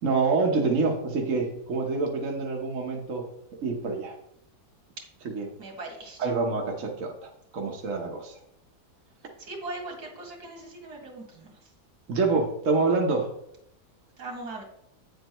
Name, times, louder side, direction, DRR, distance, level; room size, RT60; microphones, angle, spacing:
voice 1, 0.0-3.2 3.6-4.1 5.3-5.5 6.2-8.3 12.1-13.3, right 4 dB, 55° right, 0 dB, 1.3 m, -26 dB
voice 2, 5.6-6.3 9.4-11.5 14.2-14.6, right 2 dB, 75° right, 0 dB, 2.6 m, -39 dB
9.3 x 7.7 x 3.0 m, 0.76 s
omnidirectional pair, 1.8 m